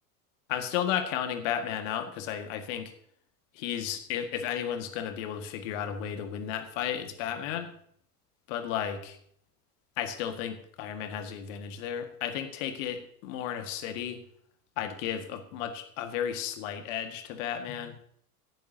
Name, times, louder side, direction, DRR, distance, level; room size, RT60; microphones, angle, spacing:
voice 1, 0.5-2.9 3.6-7.7 8.5-9.2 10.0-14.2 14.8-18.0, left 9 dB, 50° left, 8 dB, 1.9 m, -33 dB
16.0 x 12.5 x 2.8 m, 0.65 s
figure-of-eight pair, 75°, 48 cm